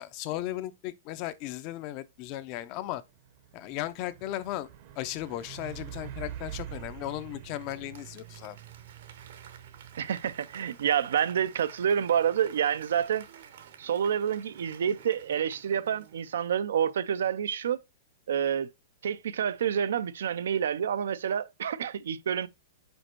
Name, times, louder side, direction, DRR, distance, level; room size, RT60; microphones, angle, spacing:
voice 1, 0.0-3.0 3.5-4.7 5.0-8.6, left 14 dB, 35° left, 0.5 m, -36 dB
Truck, 2.2-2.4 2.8-15.3, right 11 dB, 45° right, 0.7 m, -47 dB
Applause / Crowd, 7.4-16.9 17.2-17.3, right 8 dB, 70° right, 1.0 m, -52 dB
voice 2, 10.0-13.2 13.8-17.8 18.3-18.7 19.0-22.5, right 8 dB, 85° right, 0.5 m, -28 dB
5.3 x 4.3 x 4.4 m
supercardioid pair, 160°, 0 cm